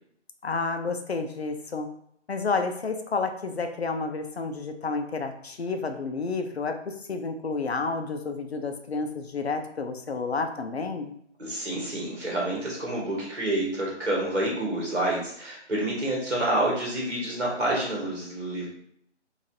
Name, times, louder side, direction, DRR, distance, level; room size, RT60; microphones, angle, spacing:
voice 1, 0.4-1.9 2.3-11.1, left 4 dB, 60° left, 6 dB, 0.6 m, -30 dB
voice 2, 11.4-18.7, right 1 dB, 60° right, -4 dB, 1.5 m, -28 dB
4.1 x 2.6 x 2.7 m, 0.67 s
figure-of-eight pair, 155°, 36 cm